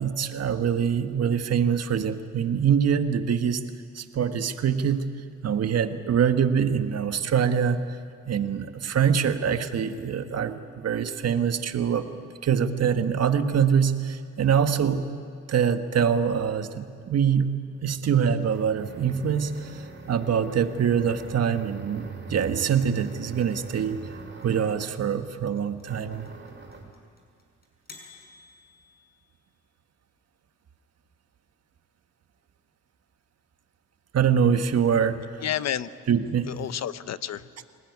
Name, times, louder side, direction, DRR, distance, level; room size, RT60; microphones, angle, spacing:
voice 1, 0.0-3.6 4.0-5.1 5.4-7.8 8.3-12.1 12.4-15.1 15.5-17.5 17.8-24.0 24.4-26.3 34.1-35.2 36.1-36.5, right 7 dB, 55° right, 8 dB, 1.6 m, -24 dB
sound 1, 17.7-25.0 25.8-27.0, right 3 dB, 35° right, 6.1 m, -42 dB
sound 2, 22.6-29.6, left 3 dB, 30° left, 6.3 m, -52 dB
voice 2, 35.4-35.9 36.5-37.7, left 10 dB, 60° left, 14 dB, 1.0 m, -30 dB
26.0 x 19.0 x 9.6 m, 2.2 s
cardioid pair, 90°, 30 cm